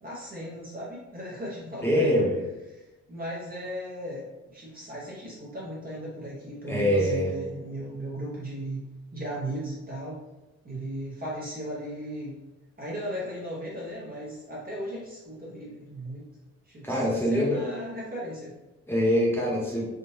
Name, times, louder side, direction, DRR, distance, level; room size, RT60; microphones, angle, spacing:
voice 1, 0.0-2.1 2.7-2.8 3.1-8.8 9.1-10.2 10.6-12.4 12.8-16.3 16.7-18.5, equal, 30° right, -6 dB, 1.0 m, -36 dB
voice 2, 1.8-2.3 6.7-7.2 16.8-17.6 18.9-19.9, equal, 10° left, -6 dB, 1.2 m, -24 dB
3.7 x 2.5 x 2.7 m, 1.0 s
cardioid pair, 90°, 30 cm